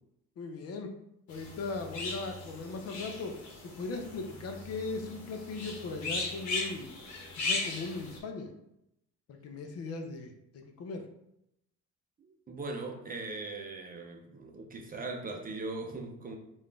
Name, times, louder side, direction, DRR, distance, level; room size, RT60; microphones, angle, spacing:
voice 1, 0.4-0.9 1.3-6.9 7.4-8.5 9.4-11.1, left 3 dB, 50° left, 4 dB, 0.6 m, -38 dB
sound 1, 1.3-8.2, left 3 dB, 65° left, 1.2 m, -38 dB
voice 2, 12.2-16.4, right 3 dB, 25° right, 2 dB, 0.5 m, -40 dB
3.9 x 2.5 x 3.3 m, 0.82 s
cardioid pair, 120°, 32 cm